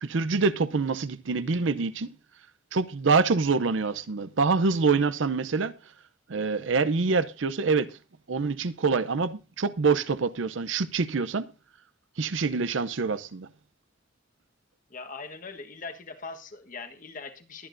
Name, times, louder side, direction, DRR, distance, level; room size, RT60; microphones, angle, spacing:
voice 1, 0.0-2.2 2.7-5.7 6.3-8.0 8.3-11.5 12.2-13.5, right 4 dB, 85° right, 0.6 m, -25 dB
voice 2, 14.9-17.7, left 4 dB, 45° left, 1.3 m, -41 dB
21.5 x 8.9 x 2.6 m
head